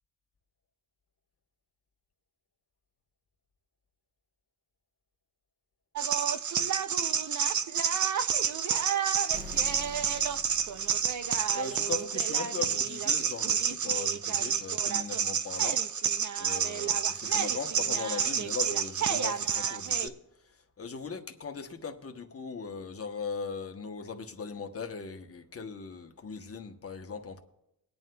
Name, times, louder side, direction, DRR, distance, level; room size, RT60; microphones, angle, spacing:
sound 1, 5.9-20.1, right 7 dB, 50° right, 0.5 m, -29 dB
sound 2, 9.3-12.0, left 1 dB, 20° right, 0.9 m, -46 dB
voice 1, 11.5-15.8 16.4-20.2 20.8-27.4, left 5 dB, 35° left, 4 dB, 0.9 m, -39 dB
22.0 x 9.3 x 2.2 m, 0.86 s
wide cardioid pair, 150°, 40 cm